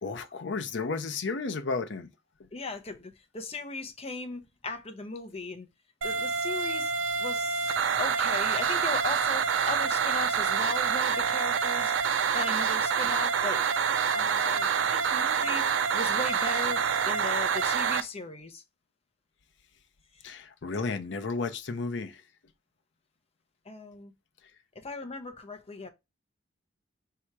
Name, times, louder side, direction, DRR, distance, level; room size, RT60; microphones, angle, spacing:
voice 1, 0.0-2.1 20.2-22.2, left 4 dB, 70° left, 0.6 m, -33 dB
voice 2, 2.5-5.7 6.0-6.9 7.2-13.6 14.1-18.6 23.7-24.1 24.8-25.9, left 3 dB, 35° left, 0.7 m, -37 dB
sound 1, 6.0-18.0, right 6 dB, 85° right, 0.5 m, -27 dB
3.5 x 2.9 x 4.5 m
head